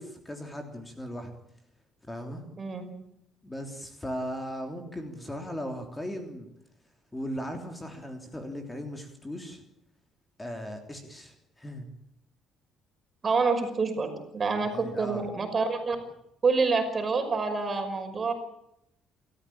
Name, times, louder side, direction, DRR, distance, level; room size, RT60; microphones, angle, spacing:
voice 1, 0.0-1.3 2.0-2.4 3.4-6.5 7.1-9.6 10.4-11.9 14.6-15.2, equal, 15° left, 4 dB, 3.3 m, -37 dB
voice 2, 13.2-16.0 16.4-18.3, right 4 dB, 30° right, 6 dB, 5.7 m, -27 dB
28.5 x 14.0 x 8.8 m, 0.79 s
cardioid pair, 115°, 0 cm